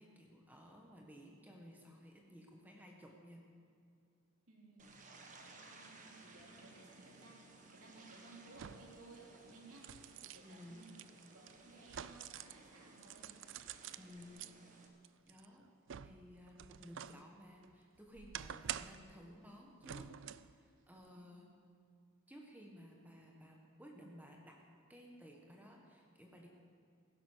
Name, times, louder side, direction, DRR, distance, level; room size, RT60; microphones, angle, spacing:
voice 1, 0.0-3.4 10.4-10.8 14.0-14.5 15.2-15.6 16.0-20.1 20.4-21.5 22.3-24.6 24.9-26.5, equal, 10° right, 0 dB, 1.4 m, -56 dB
voice 2, 4.5-5.0 5.3-9.9 10.2-11.0 11.3-13.3 21.1-21.5, right 2 dB, 75° right, -1 dB, 3.0 m, -59 dB
sound 1, 4.8-14.9, right 3 dB, 35° right, 1.4 m, -59 dB
sound 2, 7.2-7.3 8.5-9.0 9.5-12.6 13.0-14.5 15.0-17.2 17.6-19.1 19.8-20.5 21.0-21.1, right 10 dB, 55° right, 0.4 m, -48 dB
16.0 x 10.5 x 6.3 m, 2.4 s
head